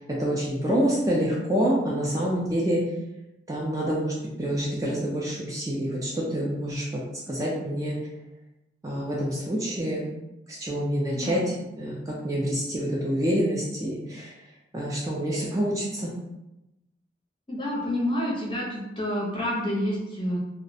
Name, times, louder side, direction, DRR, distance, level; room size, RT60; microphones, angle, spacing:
voice 1, 0.1-2.8 3.5-7.0 7.3-8.0 8.8-10.1 10.5-14.3 14.7-16.1, equal, 20° right, -4 dB, 0.3 m, -27 dB
voice 2, 17.5-20.4, left 1 dB, 25° left, -4 dB, 0.6 m, -28 dB
2.3 x 2.0 x 2.6 m, 0.93 s
head